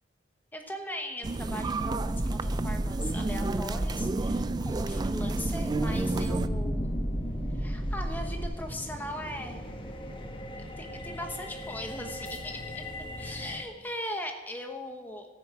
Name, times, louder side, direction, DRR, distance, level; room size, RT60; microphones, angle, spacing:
voice 1, 0.5-6.9 7.6-9.6 10.8-12.8 13.2-15.3, left 1 dB, 10° left, 4 dB, 1.1 m, -39 dB
sound 1, 1.2-6.5, right 2 dB, 20° right, 0.3 m, -31 dB
sound 2, 1.8-8.5, equal, 5° right, 1.8 m, -34 dB
sound 3, 5.8-13.6, left 1 dB, 30° left, 1.1 m, -38 dB
14.0 x 9.4 x 4.7 m, 1.2 s
head